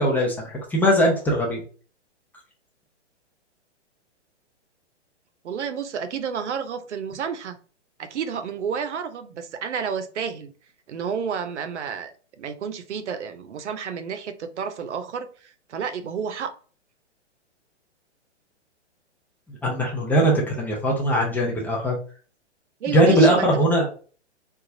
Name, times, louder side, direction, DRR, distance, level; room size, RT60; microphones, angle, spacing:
voice 1, 0.0-1.6 19.5-22.0 22.9-23.9, equal, 5° left, 0.4 m, -20 dB
voice 2, 5.4-7.6 8.0-10.5 10.9-16.5 22.8-23.6, right 7 dB, 70° right, 0.7 m, -31 dB
3.9 x 2.4 x 2.6 m
hypercardioid pair, 130°, 36 cm